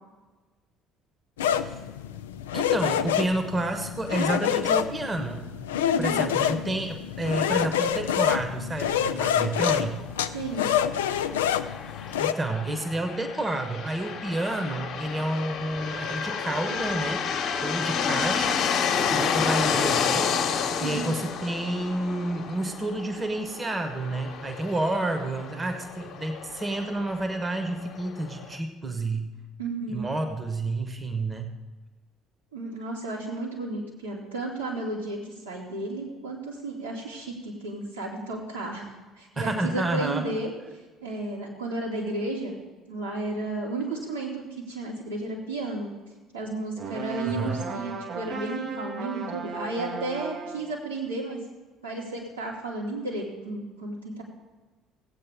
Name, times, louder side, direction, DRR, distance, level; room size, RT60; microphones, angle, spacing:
sound 1, 1.4-12.3, left 9 dB, 70° left, 0.4 m, -27 dB
voice 1, 2.5-5.4 6.0-10.1 12.2-17.2 17.6-18.6 19.1-20.4 20.8-29.3 29.9-31.5 39.4-40.3 47.3-47.6, right 2 dB, 20° right, 6 dB, 1.2 m, -30 dB
voice 2, 5.9-6.3 10.3-10.7 20.8-21.2 29.6-30.1 32.5-38.9 39.2-40.5 41.0-42.6 42.9-45.9 46.3-51.4 51.8-54.2, right 2 dB, 90° right, -9 dB, 2.7 m, -33 dB
sound 2, 11.0-28.6, left 6 dB, 50° left, 1.1 m, -30 dB
sound 3, 46.8-50.7, right 5 dB, 45° right, 0.8 m, -36 dB
16.5 x 8.5 x 3.6 m, 1.3 s
figure-of-eight pair, 55°, 0 cm